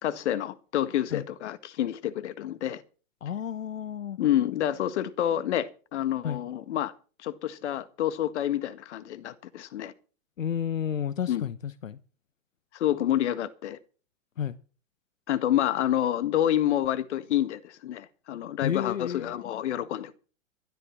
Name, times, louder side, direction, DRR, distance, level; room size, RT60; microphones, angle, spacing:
voice 1, 0.0-2.8 4.2-6.9 7.2-9.9 11.3-11.5 12.7-13.8 15.3-20.1, left 11 dB, 60° left, 1.8 m, -28 dB
voice 2, 3.2-4.2 6.2-6.4 10.4-12.0 14.4-14.6 18.6-19.5, left 9 dB, 85° left, 1.1 m, -31 dB
12.5 x 12.5 x 5.9 m
hypercardioid pair, 120°, 38 cm